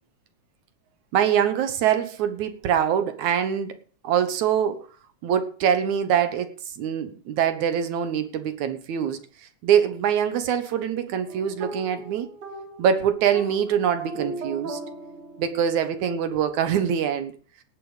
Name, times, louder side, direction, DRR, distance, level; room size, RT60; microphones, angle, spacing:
voice 1, 1.1-3.8 4.0-4.8 5.2-6.5 6.8-9.2 9.6-12.3 12.8-14.8 15.4-17.3, right 8 dB, 70° right, 10 dB, 2.5 m, -24 dB
sound 1, 11.3-15.9, right 3 dB, 55° right, 3.9 m, -38 dB
18.5 x 7.2 x 5.0 m, 0.40 s
omnidirectional pair, 3.6 m